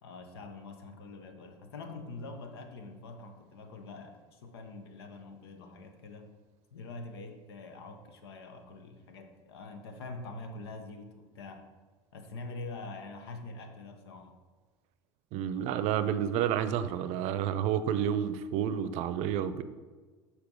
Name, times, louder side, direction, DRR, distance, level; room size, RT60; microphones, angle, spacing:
voice 1, 0.0-6.3 6.7-11.7 12.1-14.4, left 3 dB, 85° left, 6 dB, 0.9 m, -45 dB
voice 2, 15.3-19.6, right 9 dB, 60° right, 13 dB, 0.5 m, -30 dB
6.8 x 4.3 x 5.3 m, 1.4 s
hypercardioid pair, 85°, 13 cm